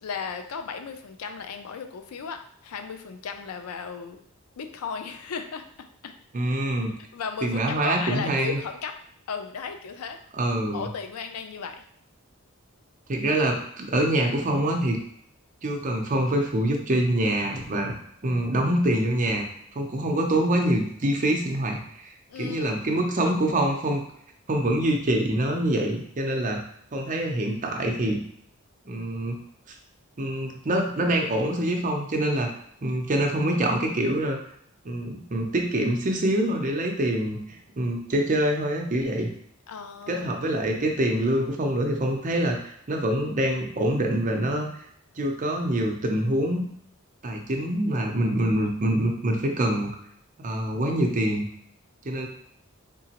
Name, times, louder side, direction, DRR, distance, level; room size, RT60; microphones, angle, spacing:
voice 1, 0.0-4.2 4.6-6.1 7.1-8.9 9.3-10.2 10.7-11.8 22.3-23.1 39.7-40.3, left 5 dB, 90° left, 7 dB, 0.4 m, -35 dB
voice 2, 6.3-6.9 7.4-8.6 10.3-10.9 13.1-15.0 15.6-17.9 18.2-19.4 19.7-24.0 24.5-26.6 26.9-28.2 28.9-29.4 30.2-32.5 32.8-34.4 34.8-37.4 37.8-39.3 40.1-44.8 45.2-46.7 47.2-49.9 50.4-51.5 52.0-52.3, right 1 dB, 35° right, 2 dB, 0.6 m, -25 dB
3.7 x 2.9 x 2.9 m, 0.69 s
head